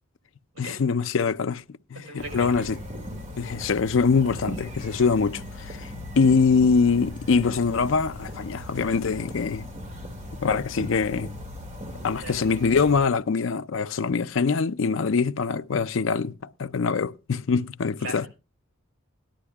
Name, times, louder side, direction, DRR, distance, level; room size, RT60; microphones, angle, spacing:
voice 1, 0.6-1.6 1.9-2.8 3.4-5.9 6.2-9.7 10.4-11.3 12.0-16.3 16.6-18.3, left 5 dB, 60° left, 0.5 m, -23 dB
voice 2, 2.1-2.7 12.2-12.3 18.0-18.3, right 2 dB, 75° right, 5.9 m, -38 dB
sound 1, 2.2-13.0, left 1 dB, 35° right, 2.3 m, -38 dB
18.0 x 11.5 x 2.3 m
head